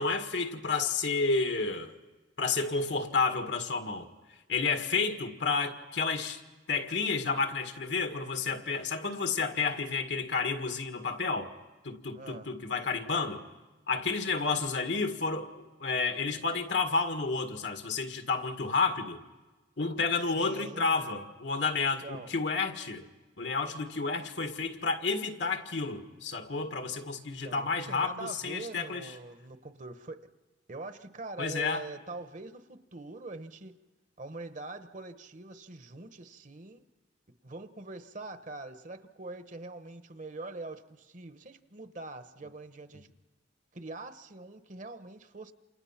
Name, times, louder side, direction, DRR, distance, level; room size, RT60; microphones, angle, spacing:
voice 1, 0.0-2.0 2.4-4.1 4.5-6.4 6.7-11.5 11.8-13.4 13.9-19.2 19.8-23.1 23.4-29.1 31.4-31.9, left 4 dB, 75° left, 1.9 m, -31 dB
voice 2, 12.1-12.5 20.4-21.1 22.0-22.3 27.4-30.3 30.7-33.7 34.2-36.8 37.4-43.1 43.7-45.5, right 2 dB, 45° right, 1.1 m, -43 dB
28.5 x 28.0 x 5.9 m
head